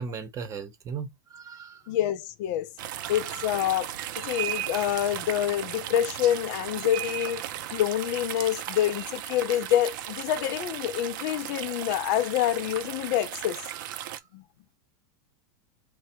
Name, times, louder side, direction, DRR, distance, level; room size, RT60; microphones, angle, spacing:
voice 1, 0.0-1.8 3.0-3.1 13.7-14.2, right 6 dB, 30° right, 0.9 m, -38 dB
voice 2, 1.9-2.7 3.1-7.4 7.7-13.6 14.3-14.4, left 11 dB, 55° left, 0.5 m, -27 dB
sound 1, 2.8-14.2, right 12 dB, 65° right, 0.5 m, -36 dB
3.3 x 2.2 x 4.3 m
supercardioid pair, 125°, 11 cm